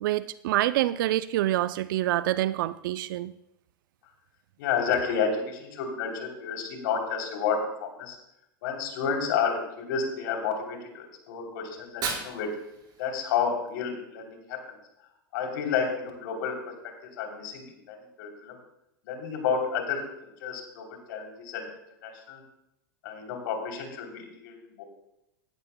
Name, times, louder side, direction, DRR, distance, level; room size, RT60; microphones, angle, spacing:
voice 1, 0.0-3.3, right 14 dB, 65° right, 16 dB, 0.4 m, -26 dB
voice 2, 4.6-8.2 8.6-12.5 13.0-14.8 15.3-16.7 17.2-18.5 19.0-21.7 22.0-22.4 23.0-24.8, left 6 dB, 65° left, 2 dB, 3.2 m, -31 dB
Fire, 11.7-13.7, right 5 dB, 35° right, 4.8 m, -37 dB
16.0 x 13.0 x 2.2 m, 0.86 s
hypercardioid pair, 95°, 12 cm